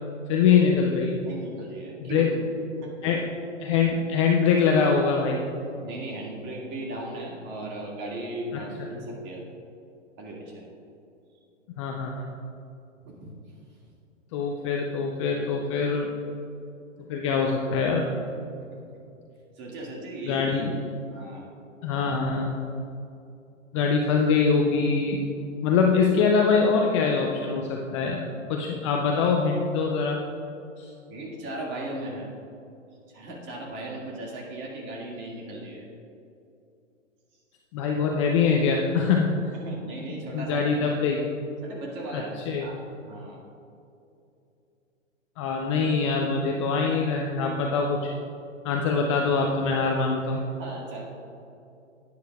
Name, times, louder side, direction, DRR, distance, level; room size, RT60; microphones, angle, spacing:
voice 1, 0.3-1.2 2.0-2.3 3.0-3.3 3.6-5.4 8.5-8.9 11.8-12.3 14.3-16.1 17.1-18.0 20.2-20.7 21.8-22.5 23.7-25.2 25.6-30.2 30.8-30.9 37.7-39.3 40.1-41.3 42.1-42.7 45.4-48.1 48.6-50.4, left 5 dB, 25° left, 1 dB, 0.4 m, -24 dB
voice 2, 1.3-2.3 2.8-3.1 5.8-9.4 10.2-10.6 13.0-13.3 18.6-18.8 19.6-20.6 21.1-21.5 31.1-32.3 33.1-35.8 39.6-40.7 41.6-42.3 42.6-42.8 43.0-43.4 50.6-51.1, right 1 dB, 30° right, -2 dB, 2.0 m, -37 dB
11.0 x 9.6 x 2.3 m, 2.7 s
hypercardioid pair, 130°, 38 cm